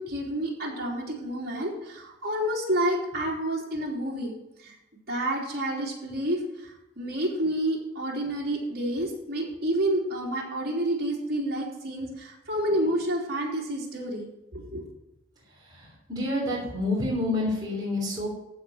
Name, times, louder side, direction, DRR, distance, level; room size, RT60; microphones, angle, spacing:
voice 1, 0.0-4.3 4.6-4.8 5.1-14.3 14.5-14.9, right 1 dB, 50° right, -4 dB, 3.3 m, -29 dB
voice 2, 15.7-18.3, left 2 dB, 20° right, -6 dB, 3.3 m, -28 dB
14.5 x 5.1 x 6.3 m, 0.89 s
head